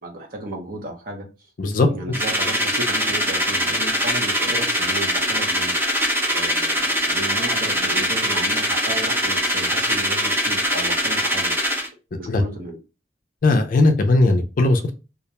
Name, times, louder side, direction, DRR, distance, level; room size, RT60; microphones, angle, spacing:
voice 1, 0.0-1.2 1.9-5.7 6.3-11.5 12.2-12.8, right 1 dB, 55° right, 3 dB, 0.7 m, -33 dB
voice 2, 1.6-1.9 12.3-12.4 13.4-14.9, left 2 dB, 50° left, 6 dB, 0.4 m, -17 dB
sound 1, 2.1-11.9, equal, 15° right, 0.5 m, -22 dB
2.4 x 2.1 x 2.8 m, 0.30 s
head